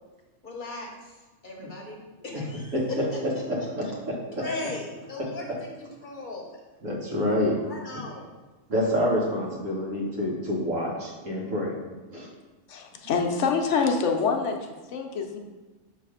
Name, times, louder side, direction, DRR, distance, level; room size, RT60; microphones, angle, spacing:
voice 1, 0.4-1.2 1.4-3.2 3.6-3.9 4.4-6.6 7.6-8.3, left 2 dB, 40° left, -1 dB, 1.0 m, -38 dB
voice 2, 2.7-4.7 5.2-5.6 6.8-7.6 8.7-11.7 12.1-12.3, equal, 70° right, -3 dB, 1.7 m, -28 dB
voice 3, 12.7-14.6 14.9-15.4, left 5 dB, 65° left, 3 dB, 1.0 m, -25 dB
6.0 x 3.2 x 4.9 m, 1.2 s
omnidirectional pair, 1.4 m